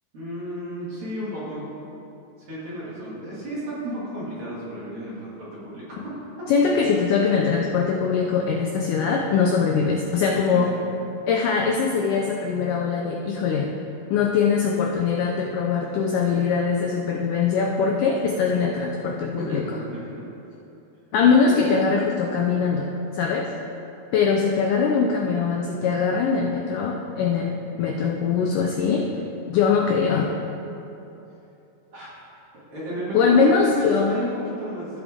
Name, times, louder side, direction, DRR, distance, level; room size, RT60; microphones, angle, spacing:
voice 1, 0.1-1.7 2.4-6.5 10.3-10.8 19.4-20.2 31.9-32.1 32.5-35.0, right 1 dB, 45° right, -9 dB, 2.4 m, -33 dB
voice 2, 6.5-10.7 11.3-13.7 14.1-19.6 21.1-23.5 24.1-29.1 29.5-30.3 33.1-34.1, left 5 dB, 80° left, 0 dB, 1.9 m, -22 dB
15.5 x 5.2 x 3.6 m, 2.9 s
omnidirectional pair, 4.3 m